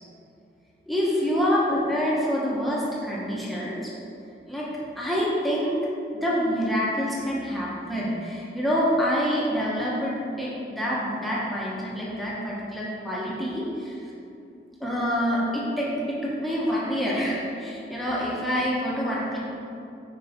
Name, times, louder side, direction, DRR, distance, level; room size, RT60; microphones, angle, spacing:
voice 1, 0.9-3.8 4.5-5.8 6.2-13.9 14.8-19.4, equal, ahead, -7 dB, 1.2 m, -26 dB
9.4 x 5.1 x 3.7 m, 2.7 s
head